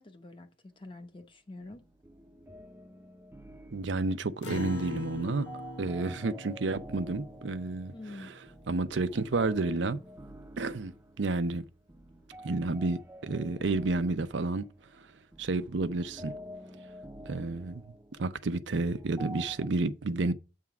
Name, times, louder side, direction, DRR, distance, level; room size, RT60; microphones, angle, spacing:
voice 1, 0.0-1.9 7.9-8.3, left 2 dB, 25° left, 0.9 m, -46 dB
sound 1, 1.6-19.7, equal, 10° right, 0.6 m, -49 dB
voice 2, 3.7-5.5 5.8-7.9 8.7-10.0 10.6-11.6 12.4-14.7 15.0-15.1 15.4-16.4 17.3-17.8 18.2-20.3, right 3 dB, 80° right, 0.6 m, -30 dB
Acoustic guitar, 4.4-9.1, left 1 dB, 85° left, 1.4 m, -43 dB
8.4 x 3.6 x 5.8 m
head